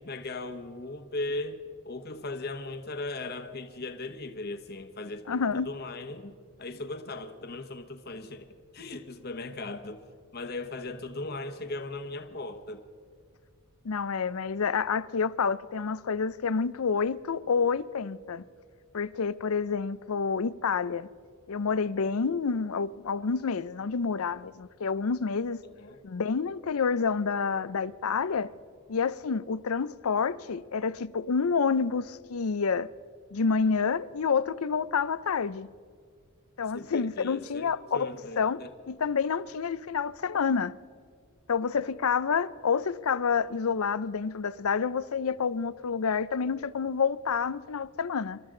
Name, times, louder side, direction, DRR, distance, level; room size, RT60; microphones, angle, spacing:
voice 1, 0.0-10.0 10.3-12.8 25.6-26.0 36.7-38.7, left 2 dB, 50° left, 1.2 m, -38 dB
voice 2, 5.3-5.7 13.8-18.4 18.9-21.1 21.5-25.6 26.0-28.5 28.9-32.9 33.3-35.7 36.6-40.7 41.5-48.4, left 5 dB, 90° left, 0.5 m, -28 dB
27.0 x 13.5 x 3.8 m
head